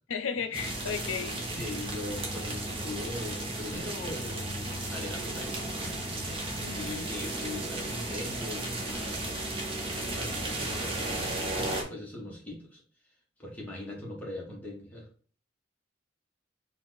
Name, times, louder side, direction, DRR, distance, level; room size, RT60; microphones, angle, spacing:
voice 1, 0.1-1.4 6.6-7.1, left 6 dB, 85° left, 9 dB, 0.5 m, -34 dB
sound 1, 0.5-11.8, right 1 dB, 25° right, 0.8 m, -34 dB
voice 2, 1.6-4.5 4.9-5.9 6.7-9.3 10.0-12.8 13.4-15.1, left 1 dB, 10° left, -3 dB, 1.1 m, -40 dB
4.4 x 2.4 x 3.9 m, 0.44 s
head